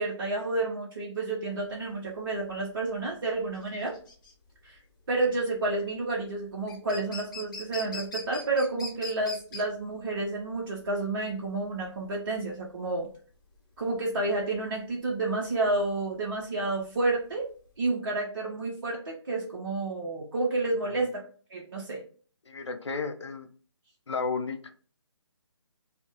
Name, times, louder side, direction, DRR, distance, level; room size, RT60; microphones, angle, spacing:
voice 1, 0.0-4.0 4.6-4.8 5.1-13.1 13.8-17.5 17.8-21.2 21.5-22.0, right 2 dB, 45° right, -3 dB, 0.5 m, -30 dB
sound 1, 1.5-17.9, left 3 dB, 45° left, 0.8 m, -44 dB
voice 2, 22.5-23.5 24.1-24.7, left 4 dB, 70° left, 5 dB, 0.5 m, -33 dB
2.4 x 2.0 x 2.7 m, 0.42 s
figure-of-eight pair, 145°, 15 cm